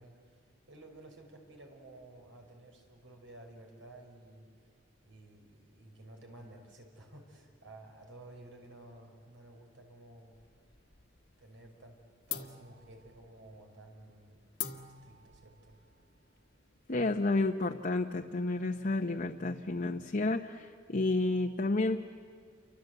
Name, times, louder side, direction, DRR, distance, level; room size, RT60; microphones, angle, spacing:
voice 1, 0.0-4.5 5.0-10.4 11.4-12.0 12.3-14.5 14.8-15.8, right 1 dB, 85° right, 2 dB, 5.4 m, -53 dB
sound 1, 10.3-11.2 11.5-11.9 12.3-17.4, left 10 dB, 60° left, 1.5 m, -45 dB
voice 2, 16.9-22.0, left 2 dB, 45° left, 3 dB, 0.9 m, -31 dB
29.5 x 24.0 x 8.1 m, 2.2 s
head